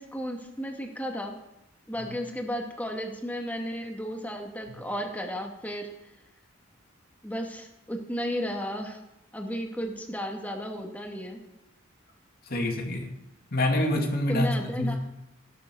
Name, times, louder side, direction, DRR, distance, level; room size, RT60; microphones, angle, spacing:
voice 1, 0.0-1.4 1.9-5.9 7.2-9.0 9.3-11.4 14.3-15.0, equal, 10° left, 2 dB, 2.3 m, -33 dB
voice 2, 12.5-13.1 13.5-15.0, left 1 dB, 50° left, 1 dB, 2.6 m, -27 dB
16.0 x 11.5 x 6.4 m, 0.88 s
head